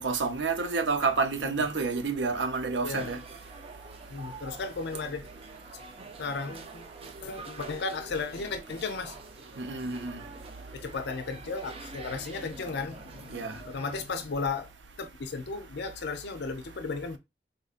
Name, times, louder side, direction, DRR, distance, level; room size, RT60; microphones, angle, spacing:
voice 1, 0.0-3.2 9.6-10.2 13.3-13.6, right 4 dB, 85° right, 0.7 m, -29 dB
voice 2, 2.8-3.2 4.1-5.3 6.2-9.2 10.7-14.7 15.0-17.2, left 4 dB, 65° left, 0.5 m, -35 dB
sound 1, 3.0-14.0, right 3 dB, 35° right, 0.5 m, -46 dB
4.0 x 2.6 x 2.4 m
head